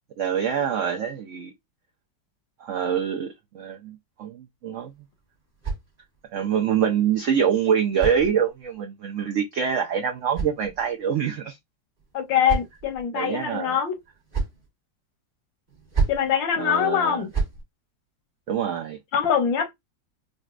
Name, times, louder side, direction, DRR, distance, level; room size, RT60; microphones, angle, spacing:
voice 1, 0.2-1.5 2.6-4.9 6.3-11.6 13.1-13.8 16.6-17.2 18.5-19.0, right 8 dB, 85° right, 0.6 m, -25 dB
sound 1, 4.7-6.4 7.4-8.8 9.8-11.1 12.0-13.0 13.9-14.7 15.7-16.3 17.1-17.6, right 5 dB, 25° right, 1.0 m, -32 dB
voice 2, 12.1-14.0 16.1-17.3 19.1-19.7, left 8 dB, 85° left, 1.5 m, -23 dB
5.1 x 2.2 x 2.4 m
omnidirectional pair, 2.0 m